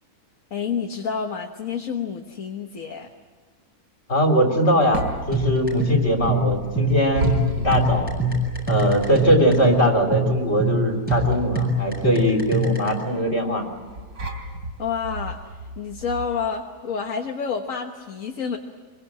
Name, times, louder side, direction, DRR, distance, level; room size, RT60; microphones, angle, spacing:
voice 1, 0.5-3.1 14.8-18.6, left 6 dB, 55° left, 3 dB, 1.7 m, -29 dB
voice 2, 4.1-8.1 8.7-13.7, equal, 40° left, 3 dB, 3.8 m, -21 dB
sound 1, 4.5-16.4, equal, 85° right, 3.8 m, -33 dB
sound 2, 5.3-12.9, equal, 5° right, 7.3 m, -23 dB
25.5 x 23.5 x 8.8 m, 1.4 s
omnidirectional pair, 1.7 m